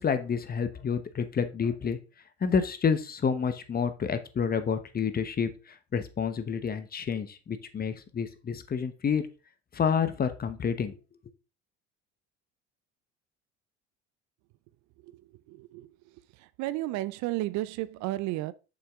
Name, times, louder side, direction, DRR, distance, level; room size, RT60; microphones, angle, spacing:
voice 1, 0.0-2.0 2.4-5.5 5.9-9.3 9.7-11.0, left 6 dB, 30° left, 1.1 m, -29 dB
voice 2, 15.5-15.9 16.6-18.5, right 17 dB, 70° right, 0.6 m, -32 dB
7.0 x 5.9 x 3.6 m
supercardioid pair, 100°, 30 cm